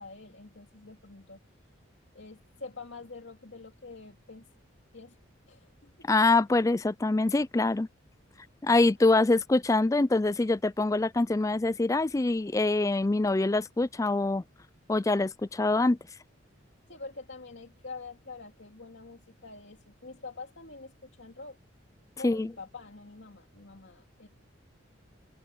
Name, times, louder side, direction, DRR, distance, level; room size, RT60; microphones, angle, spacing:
voice 1, 0.0-1.4 2.1-4.5 4.9-5.2 5.5-6.1 8.4-8.5 16.9-20.9 21.2-21.6 22.2-24.3, left 3 dB, 65° left, 2.6 m, -46 dB
voice 2, 6.1-7.9 8.6-14.4 14.9-16.0 22.2-22.5, left 2 dB, 15° left, 0.3 m, -24 dB
head